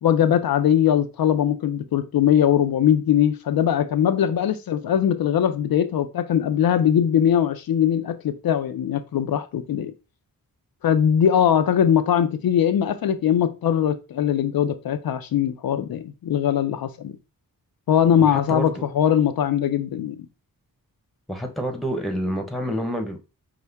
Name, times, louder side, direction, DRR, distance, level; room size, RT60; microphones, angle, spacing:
voice 1, 0.0-9.9 10.8-17.1 17.9-20.2, left 9 dB, 75° left, 0.5 m, -21 dB
voice 2, 18.2-18.8 21.3-23.2, equal, ahead, 1.0 m, -28 dB
5.6 x 2.1 x 3.4 m
wide cardioid pair, 75°, 36 cm